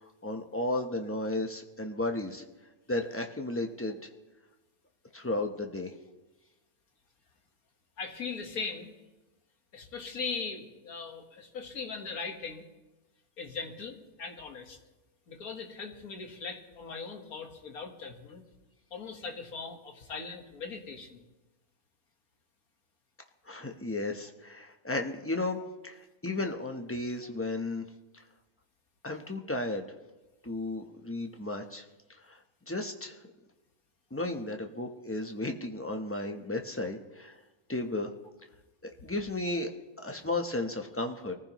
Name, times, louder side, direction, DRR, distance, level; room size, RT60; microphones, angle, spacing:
voice 1, 0.0-2.4 2.9-4.0 5.1-5.9 23.5-27.8 29.0-29.9 30.4-31.8 32.3-32.4 32.7-33.2 34.1-37.4 37.7-38.1 38.8-39.7 40.0-41.3, left 2 dB, 15° left, 3 dB, 0.4 m, -34 dB
voice 2, 8.0-8.9 9.7-12.7 13.4-14.8 15.3-18.4 18.9-21.2, left 5 dB, 65° left, 3 dB, 1.9 m, -39 dB
24.0 x 15.0 x 3.0 m, 1.1 s
omnidirectional pair, 1.7 m